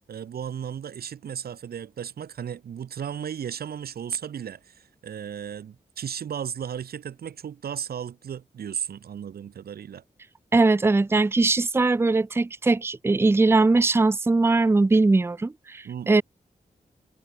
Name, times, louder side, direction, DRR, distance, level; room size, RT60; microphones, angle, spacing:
voice 1, 0.1-10.0 15.8-16.1, right 8 dB, 75° right, 0.5 m, -35 dB
voice 2, 10.5-16.2, right 3 dB, 15° right, 0.4 m, -20 dB
cardioid pair, 60°, 16 cm